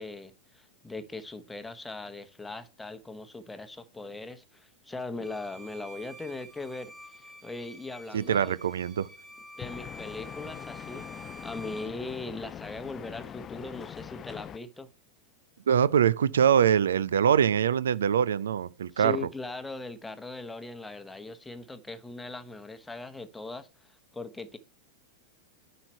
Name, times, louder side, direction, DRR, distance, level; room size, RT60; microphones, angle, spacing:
voice 1, 0.0-8.6 9.6-14.9 18.9-24.6, left 3 dB, 10° left, 1.0 m, -40 dB
Bowed string instrument, 5.2-12.0, equal, 10° right, 2.6 m, -48 dB
voice 2, 8.1-9.1 15.7-19.2, right 8 dB, 65° right, 0.5 m, -23 dB
sound 1, 9.6-14.6, left 9 dB, 25° left, 0.4 m, -43 dB
10.0 x 5.2 x 4.4 m
figure-of-eight pair, 90°, 0 cm